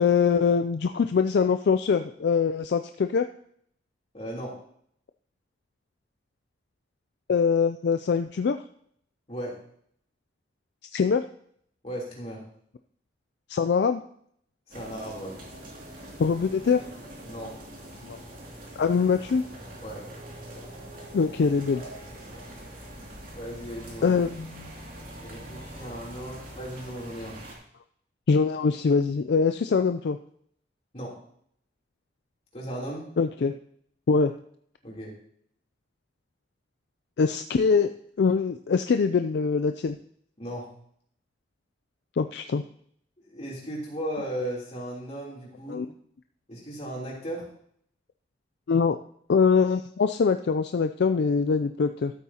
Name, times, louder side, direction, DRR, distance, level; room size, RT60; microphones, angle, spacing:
voice 1, 0.0-3.2 7.3-8.6 10.9-11.2 13.5-14.0 16.2-16.8 18.0-18.2 18.8-19.4 21.1-21.8 24.0-24.7 28.3-30.2 33.2-33.5 34.1-34.3 37.2-37.9 38.2-40.0 42.2-42.6 45.7-45.9 48.7-49.0 49.3-52.1, left 5 dB, 65° left, 8 dB, 0.4 m, -23 dB
voice 2, 4.1-4.6 9.3-9.6 11.8-12.4 14.7-15.4 17.3-17.5 19.8-20.0 21.7-22.5 23.3-24.2 25.1-27.4 30.9-31.2 32.5-33.1 34.8-35.1 40.4-40.7 43.2-45.8 46.5-47.4, right 1 dB, 35° left, -4 dB, 3.2 m, -36 dB
sound 1, 14.7-27.5, right 1 dB, 50° right, 2.5 m, -43 dB
13.0 x 8.4 x 2.9 m, 0.66 s
head